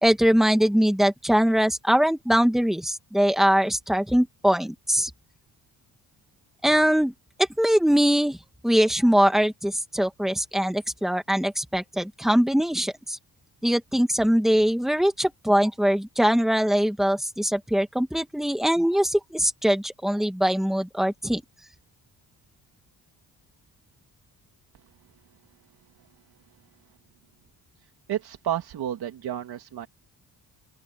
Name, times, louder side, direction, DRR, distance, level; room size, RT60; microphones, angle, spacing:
voice 1, 0.0-5.1 6.6-7.1 7.6-8.4 8.6-13.2 13.6-21.4, equal, ahead, 2.4 m, -22 dB
voice 2, 28.1-29.9, right 11 dB, 75° right, 2.4 m, -31 dB
open air
cardioid pair, 100°, 39 cm